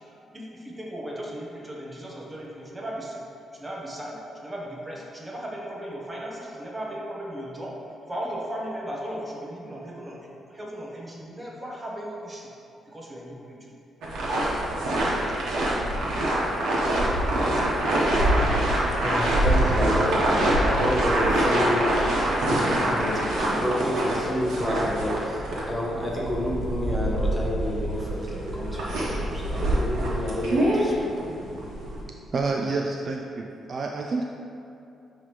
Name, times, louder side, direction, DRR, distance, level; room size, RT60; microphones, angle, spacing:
voice 1, 0.3-3.2 3.5-12.5 12.9-13.7, equal, 20° right, -2 dB, 1.0 m, -36 dB
sound 1, 14.0-32.0, right 1 dB, 85° right, 1.2 m, -25 dB
voice 2, 19.0-22.2 22.8-31.2, equal, 10° left, -4 dB, 1.1 m, -29 dB
voice 3, 32.3-34.2, right 3 dB, 45° right, 1 dB, 0.3 m, -28 dB
9.4 x 3.2 x 3.3 m, 2.8 s
cardioid pair, 110°, 0 cm